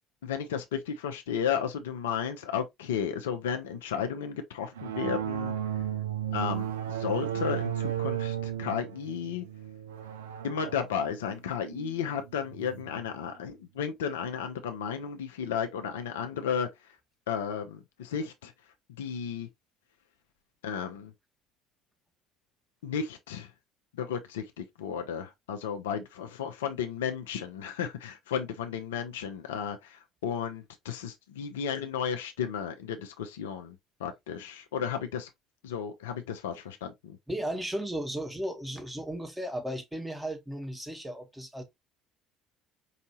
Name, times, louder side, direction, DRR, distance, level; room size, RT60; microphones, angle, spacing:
voice 1, 0.2-5.5 6.3-9.5 10.4-16.7 17.3-18.5 19.0-19.5 20.6-21.1 22.8-23.5 23.9-35.3 35.6-37.2, left 7 dB, 70° left, 0.6 m, -33 dB
sound 1, 4.8-12.9, right 10 dB, 70° right, 0.5 m, -34 dB
voice 2, 37.3-41.6, right 1 dB, 10° right, 1.3 m, -35 dB
4.8 x 2.7 x 2.9 m
figure-of-eight pair, 60°, 0 cm